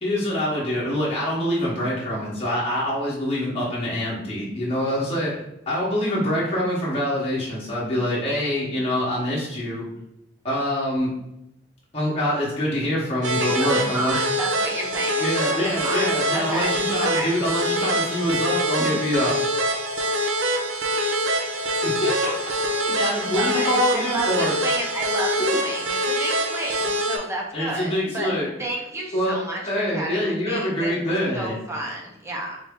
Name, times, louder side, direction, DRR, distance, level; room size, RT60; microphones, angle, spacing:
voice 1, 0.0-9.9 10.4-11.1 11.9-14.2 15.2-19.4 21.8-22.5 22.8-24.5 25.4-25.6 27.5-28.5 29.1-29.4 29.7-31.5, left 1 dB, 30° left, -7 dB, 1.0 m, -25 dB
sound 1, 13.2-27.2, right 1 dB, 75° right, 0.6 m, -25 dB
voice 2, 13.5-16.7 17.0-17.3 20.9-21.2 23.2-28.3 28.6-29.6 29.9-32.6, right 2 dB, 15° right, -2 dB, 0.7 m, -31 dB
3.9 x 2.6 x 3.5 m, 0.84 s
head